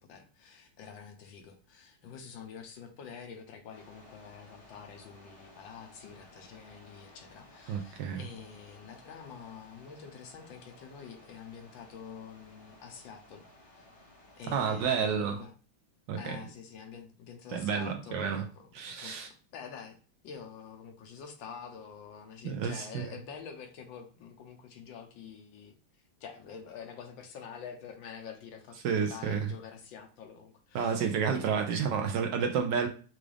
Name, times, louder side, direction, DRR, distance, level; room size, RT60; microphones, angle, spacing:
voice 1, 0.0-13.4 13.7-13.9 14.4-15.5 16.1-20.0 20.2-25.8 26.2-31.1 31.3-31.7, left 6 dB, 70° left, 1.4 m, -47 dB
sound 1, 3.7-15.2, left 1 dB, 50° left, 2.2 m, -56 dB
voice 2, 7.7-8.2 14.5-15.4 16.1-16.4 17.5-18.5 18.7-19.3 22.4-23.1 28.8-29.5 30.7-32.9, right 6 dB, 75° right, 1.1 m, -30 dB
6.0 x 2.4 x 3.3 m
omnidirectional pair, 2.3 m